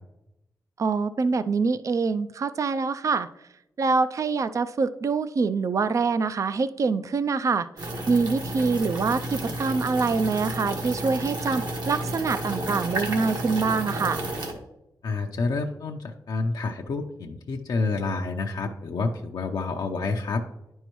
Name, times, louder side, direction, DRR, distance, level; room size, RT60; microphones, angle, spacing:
voice 1, 0.8-3.3 3.8-7.7 8.1-14.2, right 4 dB, 45° right, 13 dB, 0.4 m, -25 dB
sound 1, 7.8-14.5, right 1 dB, 70° right, 1.5 m, -31 dB
voice 2, 15.0-20.4, left 3 dB, 75° left, 2 dB, 0.6 m, -28 dB
10.0 x 5.5 x 3.0 m, 0.88 s
cardioid pair, 80°, 7 cm